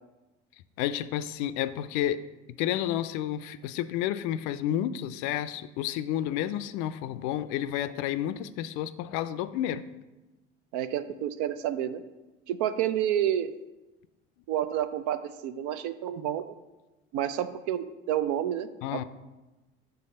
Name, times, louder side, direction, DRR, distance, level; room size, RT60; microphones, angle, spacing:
voice 1, 0.8-2.2 2.6-9.8 18.8-19.0, left 11 dB, 60° left, 13 dB, 0.5 m, -30 dB
voice 2, 10.7-12.0 12.5-13.5 14.5-16.4 17.1-19.0, right 10 dB, 65° right, 12 dB, 0.5 m, -29 dB
6.7 x 3.4 x 5.3 m, 1.1 s
hypercardioid pair, 60°, 33 cm